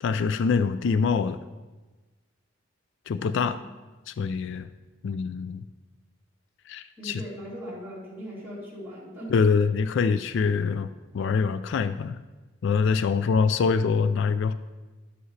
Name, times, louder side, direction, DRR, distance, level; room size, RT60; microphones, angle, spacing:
voice 1, 0.0-1.4 3.1-3.6 4.1-4.7 5.0-5.6 6.7-7.2 9.3-12.2 12.6-14.5, left 5 dB, 65° left, 12 dB, 0.3 m, -24 dB
voice 2, 7.0-9.3 13.4-13.5, equal, 10° right, -8 dB, 3.0 m, -40 dB
11.0 x 7.9 x 3.2 m, 1.2 s
head